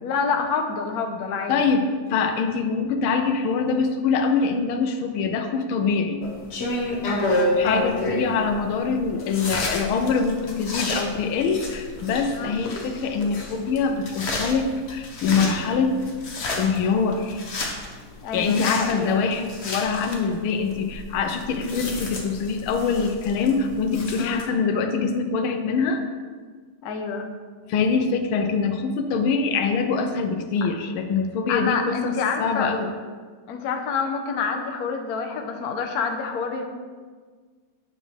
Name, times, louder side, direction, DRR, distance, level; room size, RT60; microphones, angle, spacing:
voice 1, 0.0-1.6 7.0-8.0 12.3-12.6 18.2-19.2 24.2-24.5 26.8-27.3 31.5-32.7 33.5-36.6, left 5 dB, 55° left, 4 dB, 1.2 m, -27 dB
voice 2, 1.5-1.8 2.1-6.2 7.6-16.0 16.6-17.4 18.3-26.0 27.7-32.9, left 5 dB, 90° left, 6 dB, 1.6 m, -24 dB
sound 1, 6.2-24.4, left 2 dB, 40° left, 1.1 m, -30 dB
9.5 x 7.6 x 3.3 m, 1.6 s
omnidirectional pair, 2.2 m